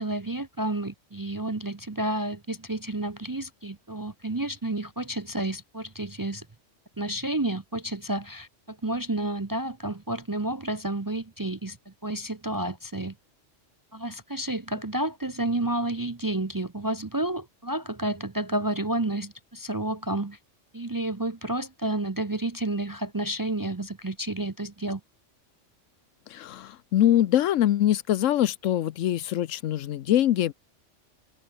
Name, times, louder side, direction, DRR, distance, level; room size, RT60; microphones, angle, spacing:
voice 1, 0.0-6.5 7.0-13.1 13.9-20.4 20.7-25.0, right 1 dB, 25° right, 0.5 m, -30 dB
voice 2, 26.3-30.5, left 12 dB, 85° left, 1.1 m, -23 dB
omnidirectional pair, 1.3 m